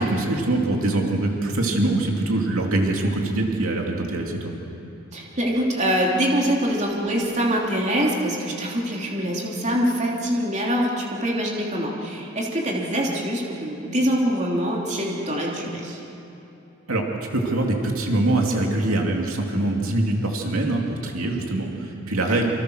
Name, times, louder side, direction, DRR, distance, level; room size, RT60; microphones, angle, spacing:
voice 1, 0.0-4.5 16.9-17.0 17.3-22.5, right 2 dB, 75° right, 0 dB, 2.9 m, -23 dB
voice 2, 5.1-16.0 22.3-22.5, equal, 35° right, -2 dB, 3.3 m, -24 dB
28.0 x 26.5 x 6.5 m, 2.9 s
head